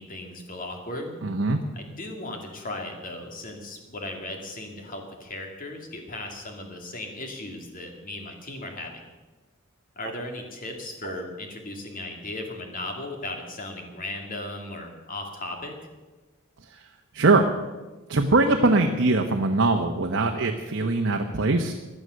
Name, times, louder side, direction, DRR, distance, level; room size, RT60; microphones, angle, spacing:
voice 1, 0.0-1.2 1.7-9.1 10.0-15.7, left 2 dB, 40° left, 3 dB, 2.5 m, -36 dB
voice 2, 1.2-1.6 11.0-11.1 17.1-17.4 18.1-21.7, right 3 dB, 60° right, 3 dB, 1.0 m, -22 dB
16.0 x 11.0 x 6.4 m, 1.2 s
head